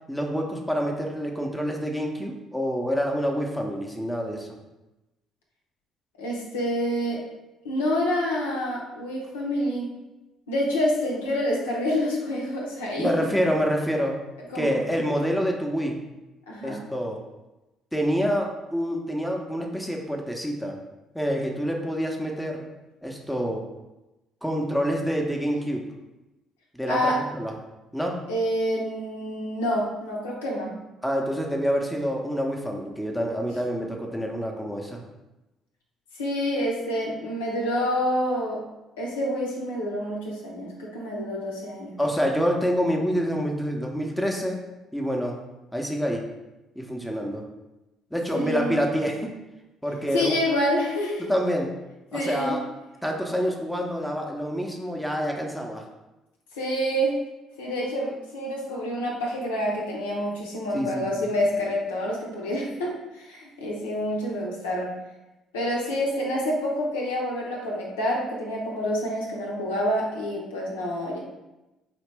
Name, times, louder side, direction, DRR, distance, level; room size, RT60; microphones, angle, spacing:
voice 1, 0.1-4.5 13.0-14.2 14.5-16.0 16.6-17.2 17.9-20.8 21.1-22.7 23.0-23.7 24.4-25.8 26.7-27.5 27.9-28.2 31.0-35.0 42.0-44.6 44.9-45.4 45.7-46.3 46.8-47.4 48.1-49.3 49.8-50.4 51.3-51.7 52.1-52.6 53.0-55.8 60.7-61.2, equal, ahead, 0 dB, 0.7 m, -27 dB
voice 2, 6.2-7.2 7.6-9.9 10.5-13.1 14.5-14.8 16.5-16.8 26.9-27.2 28.3-30.8 36.2-38.6 39.0-42.0 48.3-48.8 50.1-51.2 52.1-52.6 56.6-57.2 57.6-65.0 65.5-71.2, equal, 75° left, -3 dB, 0.7 m, -27 dB
4.2 x 2.8 x 3.3 m, 1.0 s
figure-of-eight pair, 50°, 0 cm